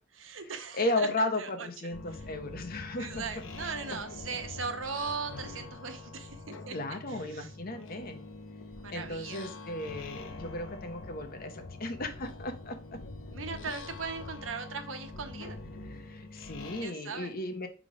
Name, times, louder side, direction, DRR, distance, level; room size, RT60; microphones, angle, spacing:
voice 1, 0.1-1.1 1.4-1.9 3.0-6.7 7.1-7.5 8.8-9.5 13.3-15.6 16.8-17.3, right 5 dB, 90° right, 6 dB, 1.0 m, -39 dB
voice 2, 0.7-3.3 6.7-8.2 8.9-13.0 15.8-17.7, left 2 dB, 50° left, 6 dB, 0.9 m, -35 dB
sound 1, 1.9-16.9, left 3 dB, 85° left, 0.7 m, -44 dB
5.1 x 3.7 x 4.9 m, 0.35 s
head